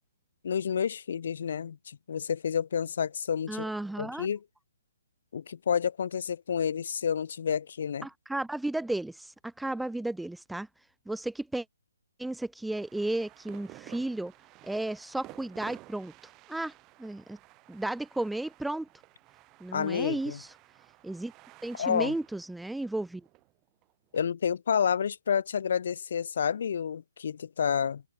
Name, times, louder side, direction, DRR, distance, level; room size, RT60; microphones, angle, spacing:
voice 1, 0.4-3.7 4.0-4.4 5.3-8.1 19.7-20.4 21.7-22.1 24.1-28.0, left 7 dB, 60° left, 0.8 m, -29 dB
voice 2, 3.5-4.3 8.0-10.7 11.1-11.6 12.2-14.3 14.6-16.1 16.5-16.7 17.0-17.4 17.7-18.9 19.6-20.5 21.0-21.3 21.6-23.2, right 2 dB, ahead, 0.7 m, -33 dB
sound 1, 12.8-24.2, right 20 dB, 20° right, 4.5 m, -54 dB
hypercardioid pair, 155°, 0 cm